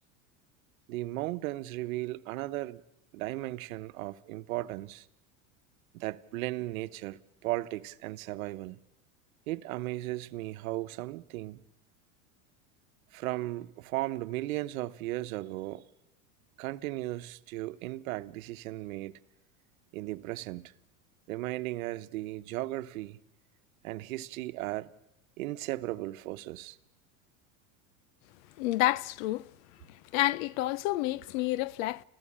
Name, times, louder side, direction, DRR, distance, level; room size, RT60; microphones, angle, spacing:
voice 1, 0.9-2.8 3.1-5.1 5.9-8.8 9.5-11.6 13.1-15.8 16.6-19.1 19.9-20.7 21.3-23.2 23.8-24.9 25.4-26.8, right 17 dB, 80° right, 1.0 m, -36 dB
voice 2, 28.6-29.5 30.1-32.0, left 16 dB, 75° left, 0.7 m, -29 dB
29.0 x 15.0 x 8.7 m
supercardioid pair, 115°, 41 cm